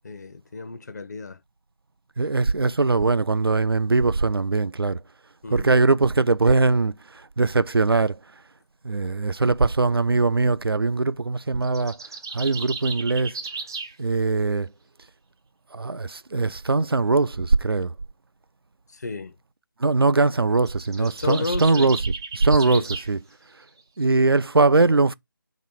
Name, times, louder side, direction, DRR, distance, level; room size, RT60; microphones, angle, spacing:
voice 1, 0.0-1.4 5.4-5.7 18.9-19.3 21.0-21.9 22.6-22.9, left 3 dB, 50° left, 0.6 m, -32 dB
voice 2, 2.2-5.0 5.5-8.2 8.8-12.0 12.3-13.4 14.0-14.7 15.7-17.9 19.8-22.0 22.3-23.2 24.0-25.1, right 3 dB, 90° right, 0.4 m, -21 dB
sound 1, 11.6-14.0 20.6-23.1, right 4 dB, 10° right, 0.3 m, -35 dB
3.0 x 2.9 x 4.4 m
figure-of-eight pair, 160°, 12 cm